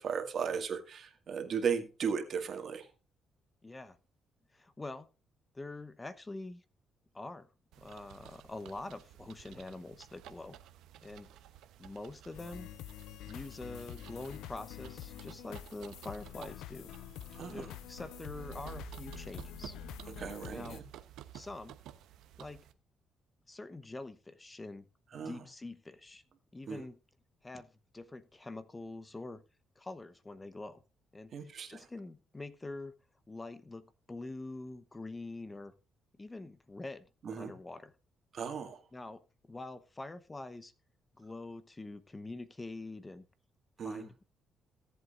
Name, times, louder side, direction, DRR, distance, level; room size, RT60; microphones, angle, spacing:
voice 1, 0.0-2.9 17.3-17.7 20.2-20.8 25.1-25.4 26.7-26.8 31.3-31.9 37.2-37.5 38.3-38.8 43.8-44.1, right 6 dB, 55° right, 2.0 m, -36 dB
voice 2, 3.6-4.0 4.5-5.1 5.5-6.6 7.1-7.5 7.8-10.6 11.0-11.3 11.8-12.7 13.3-16.9 17.5-19.8 20.5-20.8 21.3-21.8 22.4-22.6 23.5-24.8 25.1-26.2 26.5-27.0 27.4-29.4 29.8-30.8 31.1-32.9 33.3-35.7 36.2-37.1 37.4-37.9 38.9-39.2 39.5-40.7 41.2-43.3 43.8-44.2, left 2 dB, 20° left, 0.9 m, -45 dB
sound 1, 7.7-22.7, right 12 dB, 90° right, 0.9 m, -53 dB
sound 2, 12.3-20.8, left 12 dB, 90° left, 0.4 m, -47 dB
17.5 x 8.0 x 2.5 m
cardioid pair, 90°, 0 cm